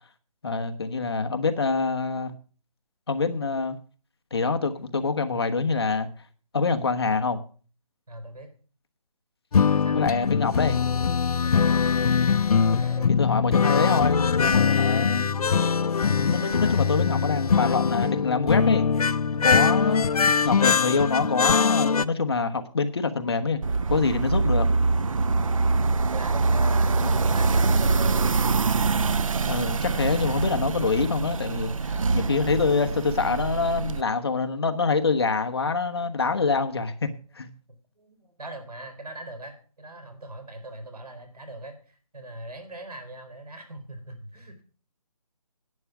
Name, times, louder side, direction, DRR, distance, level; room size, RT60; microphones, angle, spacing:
voice 1, 0.4-2.3 3.1-3.8 4.3-6.1 6.5-7.4 9.9-10.8 13.2-15.3 16.0-18.9 19.4-20.0 20.4-23.6 23.9-24.7 27.0-27.2 29.4-37.5, left 4 dB, 40° left, 1.1 m, -25 dB
voice 2, 8.1-8.5 9.7-10.2 11.4-11.9 12.7-13.2 20.1-20.3 24.2-24.3 26.1-28.3 38.0-44.6, right 1 dB, 85° right, 4.1 m, -40 dB
sound 1, 9.5-22.0, left 6 dB, 75° left, 0.6 m, -22 dB
sound 2, 23.6-34.0, right 4 dB, 60° right, 0.6 m, -24 dB
11.0 x 9.1 x 6.0 m
hypercardioid pair, 175°, 19 cm